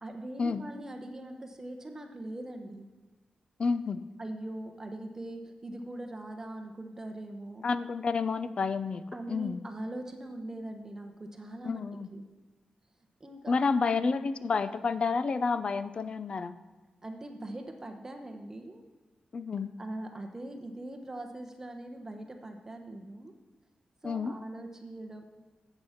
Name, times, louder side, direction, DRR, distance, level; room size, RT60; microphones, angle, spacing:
voice 1, 0.0-2.9 4.2-7.7 9.1-11.8 12.1-12.3 13.2-13.6 17.0-18.8 19.8-23.3 24.0-25.2, right 1 dB, 20° right, 4 dB, 1.0 m, -41 dB
voice 2, 3.6-4.0 7.6-9.6 11.6-12.1 13.5-16.6 19.3-19.7 24.0-24.3, left 4 dB, 45° left, 13 dB, 0.6 m, -30 dB
13.0 x 8.1 x 5.8 m, 1.2 s
wide cardioid pair, 135°, 2 cm